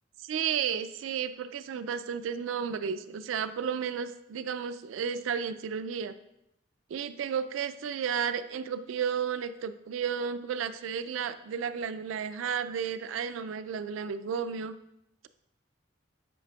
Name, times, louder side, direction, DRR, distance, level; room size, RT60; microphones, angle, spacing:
voice 1, 0.3-6.1 6.9-14.8, right 7 dB, 85° right, 11 dB, 0.3 m, -33 dB
8.3 x 5.0 x 2.3 m, 0.83 s
head